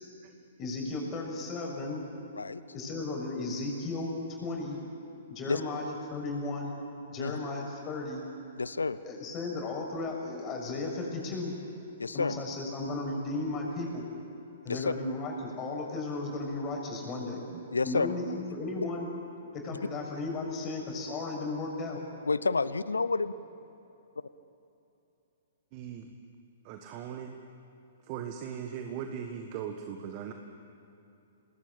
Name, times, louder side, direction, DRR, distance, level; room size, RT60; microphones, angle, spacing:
voice 1, 0.6-2.0 2.7-4.1 4.4-4.8 5.3-6.7 7.1-8.2 9.0-11.5 12.1-14.0 14.6-17.4 17.8-19.1 19.6-22.0, left 2 dB, 25° left, 0 dB, 6.6 m, -35 dB
voice 2, 8.6-9.0 12.0-12.4 14.7-14.9 17.7-18.1 22.3-23.3, left 4 dB, 80° left, 16 dB, 0.7 m, -29 dB
voice 3, 25.7-26.1 26.6-27.4 28.1-30.3, right 8 dB, 40° right, 5 dB, 1.6 m, -39 dB
27.5 x 20.0 x 8.7 m, 2.9 s
figure-of-eight pair, 120°, 0 cm